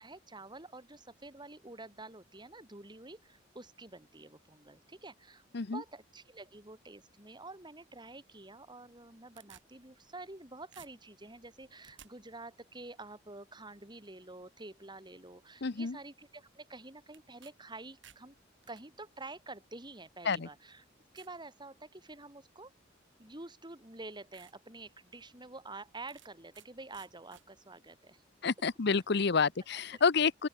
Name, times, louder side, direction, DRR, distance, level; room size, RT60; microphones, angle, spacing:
voice 1, 0.0-18.3 18.7-20.8 21.1-22.7 23.2-28.2 29.7-30.0, right 2 dB, 25° right, 6.1 m, -49 dB
sound 1, 8.9-10.4 10.7-12.1 17.1-17.5 17.8-18.8 19.7-19.8 20.4-20.5 21.2-21.4 21.9-22.2 23.4-23.5 23.9-24.0 24.3-24.5 25.0-25.1 26.1-26.7 26.9-27.4, right 9 dB, 85° right, 6.0 m, -58 dB
voice 2, 15.6-16.0 20.2-20.5 28.4-30.5, left 5 dB, 60° left, 0.8 m, -29 dB
open air
head